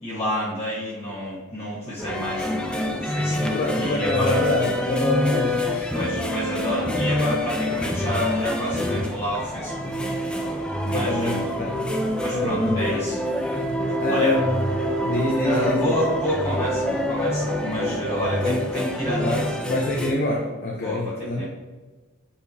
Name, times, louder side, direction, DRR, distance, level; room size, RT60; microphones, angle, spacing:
voice 1, 0.0-4.4 5.9-9.9 10.8-11.4 12.2-13.2 14.1-14.3 15.4-19.4 20.8-21.4, left 1 dB, 30° left, -7 dB, 1.3 m, -29 dB
sound 1, 2.0-20.1, left 1 dB, 5° left, 0.5 m, -26 dB
voice 2, 3.2-5.9 10.9-11.9 12.3-13.0 14.0-14.6 15.0-15.9 19.2-21.4, left 1 dB, 45° left, -1 dB, 0.7 m, -26 dB
Brass instrument, 13.8-19.6, right 5 dB, 65° right, 0.5 m, -36 dB
7.1 x 4.9 x 2.7 m, 1.3 s
head